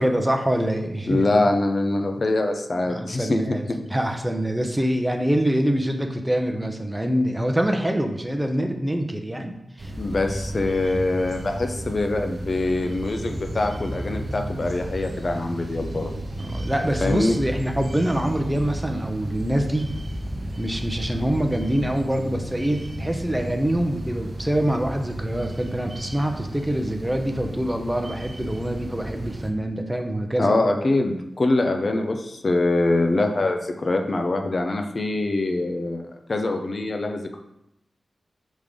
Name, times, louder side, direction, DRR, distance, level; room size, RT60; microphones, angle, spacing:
voice 1, 0.0-1.3 2.8-9.9 16.4-19.9 20.6-30.6, right 1 dB, 10° right, 4 dB, 0.7 m, -25 dB
voice 2, 1.0-3.8 10.0-16.1 17.0-17.4 30.4-36.0 36.3-37.4, left 2 dB, 50° left, 5 dB, 0.6 m, -24 dB
sound 1, 9.8-29.5, right 1 dB, 45° right, 0.8 m, -33 dB
5.2 x 3.7 x 5.0 m, 0.85 s
wide cardioid pair, 70°, 0 cm